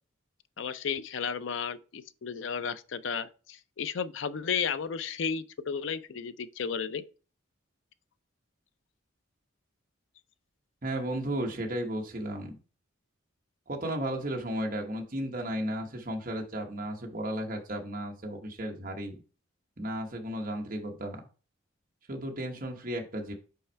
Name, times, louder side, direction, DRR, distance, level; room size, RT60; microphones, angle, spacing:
voice 1, 0.6-7.0, left 6 dB, 70° left, 0.4 m, -33 dB
voice 2, 10.8-12.6 13.7-19.2 19.8-21.2 22.1-23.3, right 1 dB, 40° right, 1.0 m, -34 dB
5.6 x 4.2 x 4.4 m
head